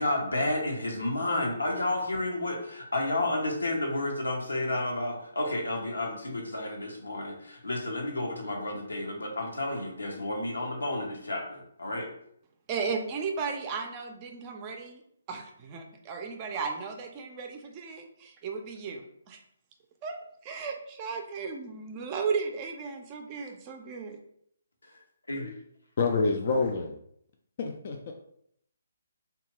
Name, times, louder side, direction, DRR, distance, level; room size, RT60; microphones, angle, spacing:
voice 1, 0.0-12.1 25.3-25.5, left 1 dB, 90° left, 1 dB, 0.8 m, -31 dB
voice 2, 12.7-15.0 15.3-19.4 20.0-20.2 20.4-24.2, right 5 dB, 25° right, 3 dB, 0.4 m, -35 dB
voice 3, 26.0-27.0 27.6-28.1, left 4 dB, 50° left, 2 dB, 0.3 m, -27 dB
2.8 x 2.3 x 3.0 m, 0.69 s
figure-of-eight pair, 145°, 0 cm